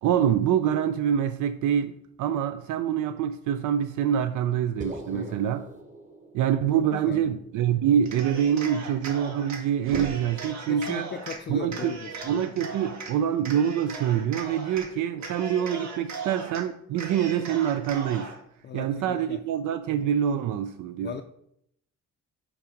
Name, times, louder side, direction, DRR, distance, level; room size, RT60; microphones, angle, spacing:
voice 1, 0.0-1.9 2.2-5.7 6.3-11.1 11.5-11.9 12.2-18.3 18.7-21.1, right 9 dB, 85° right, 0.5 m, -25 dB
sound 1, 4.8-9.2, right 1 dB, 25° right, 1.0 m, -44 dB
voice 2, 5.1-5.5 6.7-7.3 10.7-12.1 18.6-19.4 21.0-21.2, left 7 dB, 35° left, 0.4 m, -38 dB
Cheering, 8.0-9.6 9.9-11.4 11.7-13.1 13.4-14.9 15.2-16.6 16.9-18.4, right 4 dB, 70° right, 1.6 m, -38 dB
sound 2, 9.8-11.1, right 3 dB, 45° right, 0.8 m, -37 dB
5.9 x 4.7 x 5.1 m
cardioid pair, 135°, 29 cm